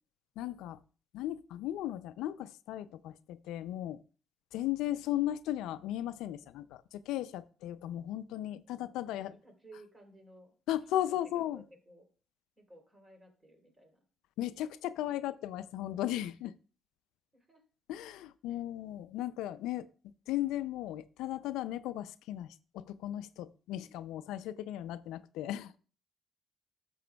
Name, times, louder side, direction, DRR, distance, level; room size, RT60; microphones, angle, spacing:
voice 1, 0.4-0.8 1.1-4.0 4.5-9.3 10.7-11.6 14.4-16.5 17.9-19.9 20.3-25.7, left 13 dB, 85° left, 0.3 m, -36 dB
voice 2, 8.7-10.5 11.3-12.1 12.6-14.0 17.3-17.6 18.5-18.6, right 1 dB, 30° right, 3.2 m, -57 dB
11.0 x 6.8 x 2.3 m
supercardioid pair, 70°, 0 cm